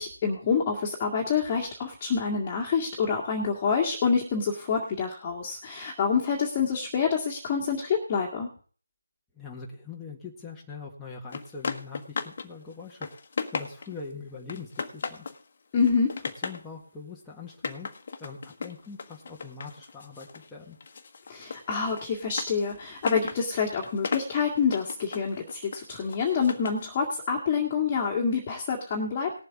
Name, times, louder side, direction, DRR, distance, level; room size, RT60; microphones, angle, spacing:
voice 1, 0.0-8.5 15.7-16.1 21.3-29.3, left 6 dB, 20° left, -2 dB, 2.0 m, -27 dB
voice 2, 9.4-13.1 13.5-15.2 16.4-17.9 18.2-20.8, left 4 dB, 5° left, -5 dB, 1.7 m, -42 dB
sound 1, 11.3-12.5 12.8-14.0 14.5-15.4 15.8-16.7 17.5-20.5 20.8-26.8, left 5 dB, 45° left, 1.4 m, -36 dB
19.0 x 7.6 x 3.7 m, 0.40 s
figure-of-eight pair, 160°, 0 cm